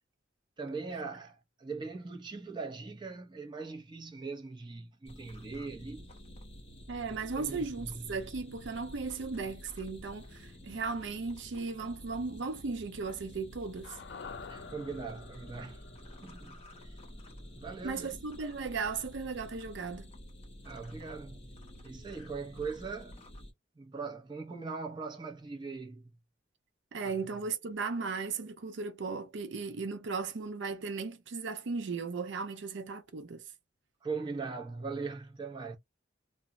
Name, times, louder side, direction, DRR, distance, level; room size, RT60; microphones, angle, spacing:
voice 1, 0.6-6.1 7.0-8.2 14.3-16.9 17.6-18.1 20.6-21.6 21.8-23.3 23.8-26.1 27.0-27.1 34.0-35.8, right 4 dB, 25° right, 0.5 m, -41 dB
sound 1, 5.1-23.5, equal, 30° left, 0.7 m, -50 dB
voice 2, 6.9-14.0 17.8-20.1 26.9-33.4, right 4 dB, 70° right, 0.5 m, -36 dB
sound 2, 13.8-18.2 18.4-18.5, left 5 dB, 60° left, 0.4 m, -49 dB
2.0 x 2.0 x 3.5 m
head